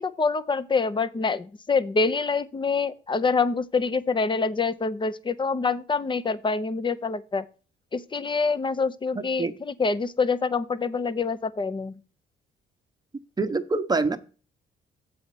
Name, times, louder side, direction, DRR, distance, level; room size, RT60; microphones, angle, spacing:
voice 1, 0.0-7.5 7.9-12.0, left 4 dB, 25° left, 0.7 m, -26 dB
voice 2, 9.1-9.5 13.4-14.2, right 3 dB, 20° right, 0.9 m, -25 dB
7.7 x 4.2 x 6.8 m
cardioid pair, 90°, 20 cm